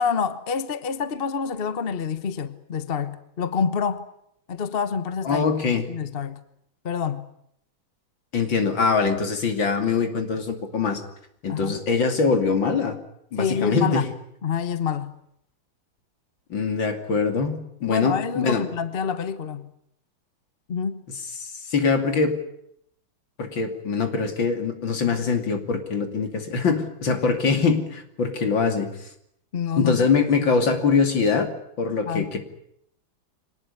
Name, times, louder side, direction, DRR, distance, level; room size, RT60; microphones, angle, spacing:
voice 1, 0.0-4.1 4.5-5.5 5.9-6.4 6.8-7.3 11.5-11.8 13.4-14.1 14.4-15.2 17.9-19.7 20.7-21.0 29.5-30.1 32.1-32.3, left 6 dB, 35° left, 1.0 m, -27 dB
voice 2, 5.2-5.9 8.3-11.0 11.4-13.0 13.3-14.1 16.5-18.7 21.4-22.4 23.4-28.9 29.8-31.5 31.8-32.4, left 5 dB, 70° left, 3.3 m, -23 dB
24.5 x 19.0 x 9.7 m
omnidirectional pair, 2.2 m